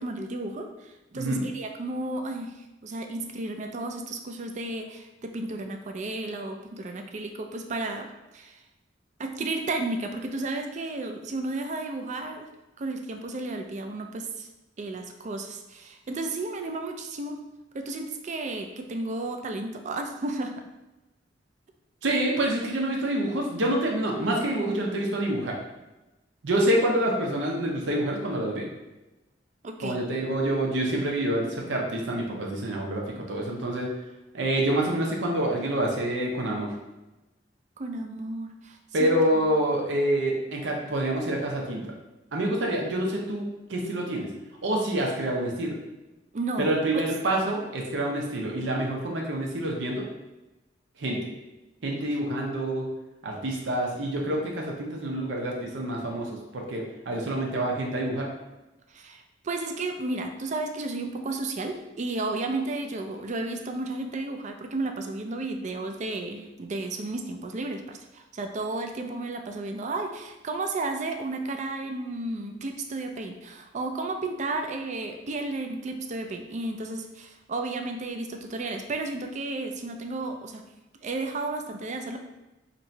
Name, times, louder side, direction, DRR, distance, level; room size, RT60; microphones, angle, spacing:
voice 1, 0.0-8.6 9.2-12.5 12.8-14.5 14.8-17.4 17.7-20.6 29.6-30.0 37.8-39.1 39.4-39.5 46.3-47.0 58.9-80.6 81.0-82.2, right 2 dB, 40° right, 5 dB, 0.4 m, -33 dB
voice 2, 1.1-1.5 22.0-25.6 26.4-28.7 29.8-33.9 34.3-36.7 38.9-41.8 42.3-44.3 44.6-45.7 46.6-50.0 51.0-51.2 51.8-52.9 53.2-58.3, right 1 dB, 80° right, -1 dB, 0.7 m, -27 dB
2.9 x 2.7 x 4.4 m, 1.0 s
head